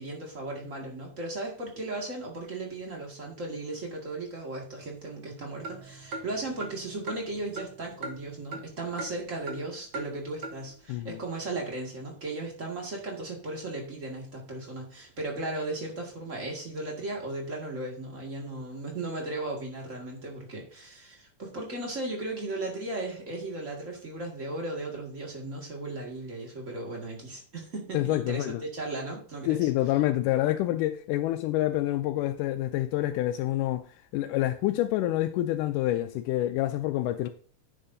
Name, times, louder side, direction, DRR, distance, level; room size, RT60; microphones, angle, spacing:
voice 1, 0.0-29.7, right 2 dB, 30° right, 1.8 m, -36 dB
sound 1, 5.6-8.7 9.0-9.6 9.9-10.1 10.4-10.5, right 2 dB, 65° right, 1.1 m, -39 dB
voice 2, 10.9-11.2 27.9-28.6 29.5-37.3, left 14 dB, 85° left, 2.1 m, -27 dB
10.0 x 8.0 x 2.7 m
omnidirectional pair, 3.7 m